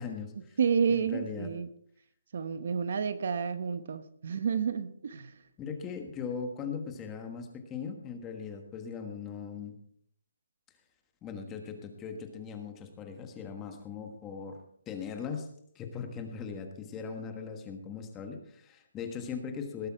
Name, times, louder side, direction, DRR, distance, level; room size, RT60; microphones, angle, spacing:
voice 1, 0.0-0.6 0.9-1.5 5.6-9.7 11.2-14.6 14.9-15.5 15.7-19.9, left 6 dB, 10° left, 5 dB, 1.3 m, -39 dB
voice 2, 0.6-1.7 2.3-5.3, right 6 dB, 50° right, 12 dB, 1.0 m, -30 dB
19.0 x 8.1 x 4.6 m, 0.65 s
hypercardioid pair, 175°, 0 cm